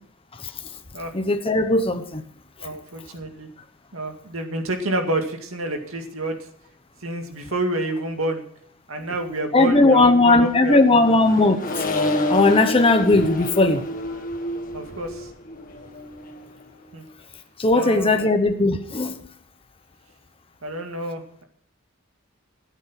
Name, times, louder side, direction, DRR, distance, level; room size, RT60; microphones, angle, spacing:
voice 1, 1.1-2.2 9.5-11.6 12.3-13.8 17.6-19.2, left 2 dB, 25° left, 1.0 m, -17 dB
voice 2, 2.6-3.5 3.9-6.4 7.0-8.4 8.9-11.1 14.7-15.3 16.9-17.0 17.7-18.3 20.6-21.4, right 1 dB, 80° right, 2.2 m, -28 dB
Accelerating revving vroom, 10.2-16.9, left 1 dB, 40° left, 1.8 m, -29 dB
14.0 x 8.4 x 6.0 m
head